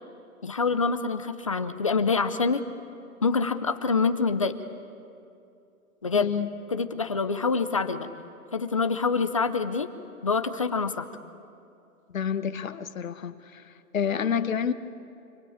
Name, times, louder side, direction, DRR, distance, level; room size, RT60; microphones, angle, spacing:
voice 1, 0.4-2.6 3.2-4.6 6.0-6.3 6.7-8.1 8.5-9.9 10.2-11.1, left 4 dB, 25° left, 10 dB, 0.6 m, -26 dB
voice 2, 6.1-6.5 12.1-13.6 13.9-14.7, left 7 dB, 65° left, 10 dB, 1.5 m, -28 dB
26.5 x 24.5 x 8.7 m, 2.6 s
hypercardioid pair, 165°, 44 cm